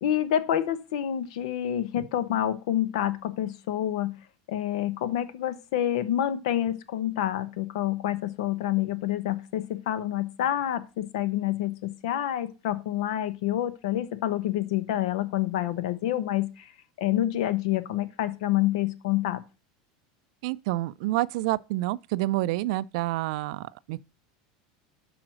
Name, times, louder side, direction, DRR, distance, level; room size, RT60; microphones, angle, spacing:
voice 1, 0.0-4.2 4.5-16.7 17.0-19.4, left 12 dB, 75° left, 0.9 m, -28 dB
voice 2, 20.4-24.0, right 17 dB, 65° right, 0.4 m, -28 dB
6.1 x 4.8 x 6.2 m
supercardioid pair, 140°, 4 cm